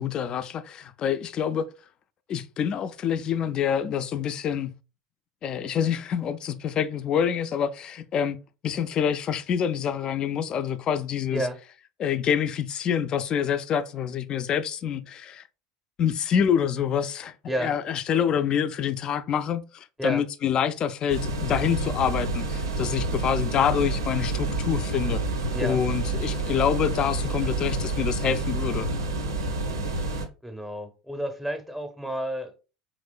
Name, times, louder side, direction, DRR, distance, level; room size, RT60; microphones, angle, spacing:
voice 1, 0.0-1.7 2.3-4.7 5.4-8.4 8.6-11.5 12.0-15.4 16.0-17.3 17.6-25.2 25.6-28.9, left 8 dB, 40° left, 0.3 m, -26 dB
sound 1, 21.1-30.3, right 2 dB, 85° right, 0.6 m, -28 dB
voice 2, 30.4-32.6, right 1 dB, ahead, 0.6 m, -30 dB
3.0 x 2.9 x 2.3 m
hypercardioid pair, 75°, 2 cm